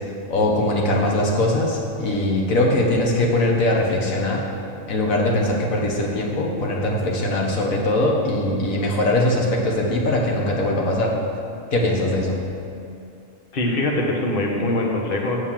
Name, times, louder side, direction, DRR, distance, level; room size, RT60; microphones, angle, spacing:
voice 1, 0.3-4.4 4.9-11.1 11.7-12.4, left 1 dB, 90° left, -1 dB, 1.7 m, -21 dB
voice 2, 13.5-15.4, left 1 dB, 45° left, 0 dB, 1.3 m, -23 dB
8.1 x 7.1 x 7.4 m, 2.5 s
omnidirectional pair, 1.4 m